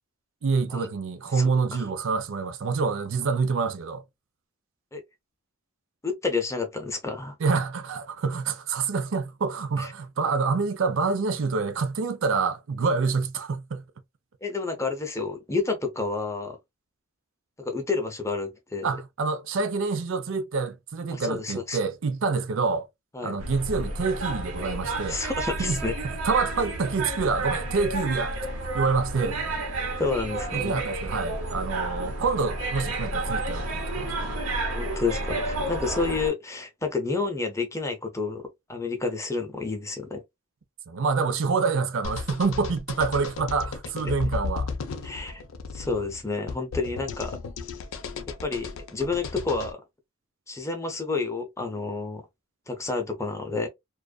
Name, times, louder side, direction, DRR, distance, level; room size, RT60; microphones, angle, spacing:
voice 1, 0.4-4.0 7.4-13.8 18.8-22.9 23.2-25.2 25.6-25.8 26.2-28.4 28.7-29.5 30.5-34.4 40.9-44.7, right 4 dB, 60° right, 0.5 m, -27 dB
voice 2, 1.3-1.8 4.9-5.0 6.0-7.4 9.8-9.9 14.4-16.6 17.6-18.9 21.1-21.8 23.1-23.4 25.1-25.9 30.0-30.8 34.7-40.2 45.0-45.4 45.7-47.4 48.4-49.8 50.5-52.3 52.7-53.7, left 4 dB, 15° left, 0.5 m, -30 dB
sound 1, 23.4-36.3, right 2 dB, 90° right, 1.0 m, -31 dB
sound 2, 42.0-49.7, left 4 dB, 70° left, 0.4 m, -35 dB
2.5 x 2.3 x 2.2 m
head